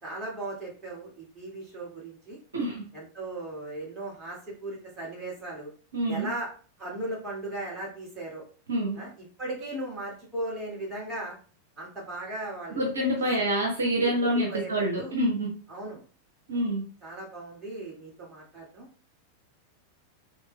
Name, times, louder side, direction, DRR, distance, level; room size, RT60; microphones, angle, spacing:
voice 1, 0.0-2.4 2.9-5.7 6.1-6.5 6.8-8.4 8.9-11.4 11.8-13.3 14.2-15.2 15.7-16.0 16.5-16.6 17.0-18.9, right 1 dB, 20° right, -4 dB, 2.1 m, -37 dB
voice 2, 2.5-2.9 5.9-6.3 8.7-9.0 12.8-15.5 16.5-16.8, right 1 dB, 70° right, 0 dB, 1.0 m, -27 dB
4.6 x 3.4 x 2.3 m, 0.40 s
figure-of-eight pair, 90°, 0 cm